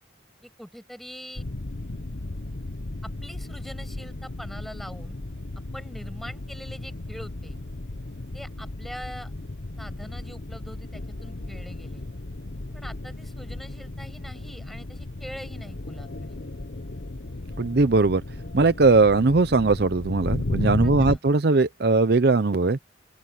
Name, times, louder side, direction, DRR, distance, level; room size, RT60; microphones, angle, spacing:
voice 1, 0.4-1.4 3.0-5.2 5.7-7.6 8.3-9.3 9.8-12.0 12.7-16.4 20.8-21.2, equal, ahead, 6.5 m, -43 dB
sound 1, 1.4-21.2, left 2 dB, 65° left, 1.1 m, -35 dB
voice 2, 17.6-18.2 18.5-22.8, right 3 dB, 55° right, 0.6 m, -20 dB
open air
head